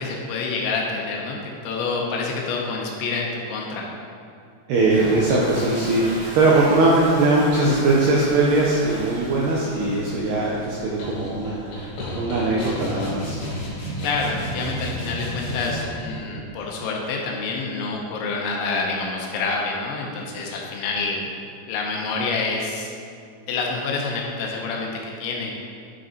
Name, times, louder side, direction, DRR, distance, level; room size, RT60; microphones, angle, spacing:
voice 1, 0.0-1.4 1.6-3.9 14.0-21.3 21.7-22.9 23.5-24.9 25.2-25.5, left 4 dB, 80° left, -1 dB, 2.9 m, -27 dB
voice 2, 4.7-13.4, right 2 dB, 80° right, -4 dB, 2.4 m, -20 dB
Toilet flush, 4.8-16.2, equal, 45° right, 2.6 m, -39 dB
sound 1, 11.0-16.2, left 1 dB, 65° left, 3.7 m, -35 dB
sound 2, 12.6-16.0, right 1 dB, 40° left, 1.8 m, -32 dB
11.0 x 5.2 x 4.4 m, 2.4 s
omnidirectional pair, 5.8 m